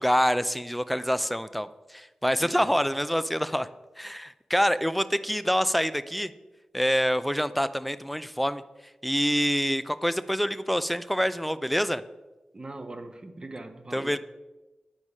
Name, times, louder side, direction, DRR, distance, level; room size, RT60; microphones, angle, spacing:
voice 1, 0.0-3.7 4.0-6.3 6.7-8.6 9.0-12.0 13.9-14.2, equal, ahead, 0.4 m, -26 dB
voice 2, 2.4-2.7 12.5-14.2, right 2 dB, 35° right, 0.9 m, -41 dB
8.9 x 4.7 x 5.5 m
cardioid pair, 55°, 2 cm